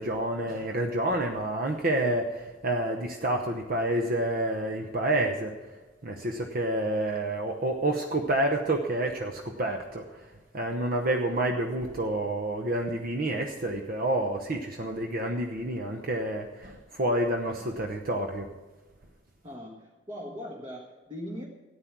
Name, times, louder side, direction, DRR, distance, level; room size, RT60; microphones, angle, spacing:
voice 1, 0.0-5.5 6.0-18.5, right 1 dB, 50° right, 3 dB, 0.9 m, -29 dB
voice 2, 19.4-21.5, equal, 30° right, 0 dB, 1.5 m, -40 dB
14.0 x 9.7 x 6.1 m, 1.2 s
head